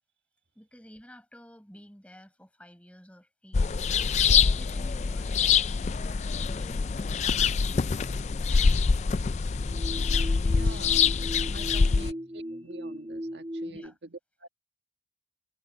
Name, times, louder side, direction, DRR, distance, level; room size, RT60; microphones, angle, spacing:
voice 1, 0.6-4.1 4.6-5.4 6.0-9.3 10.4-10.9 11.5-12.0 13.7-13.9, equal, 5° left, 5.6 m, -52 dB
sound 1, 3.5-12.1, left 5 dB, 40° left, 0.3 m, -25 dB
sound 2, 8.4-13.9, equal, 25° right, 2.7 m, -40 dB
voice 2, 10.5-11.0 11.5-14.5, right 2 dB, 85° right, 1.6 m, -46 dB
head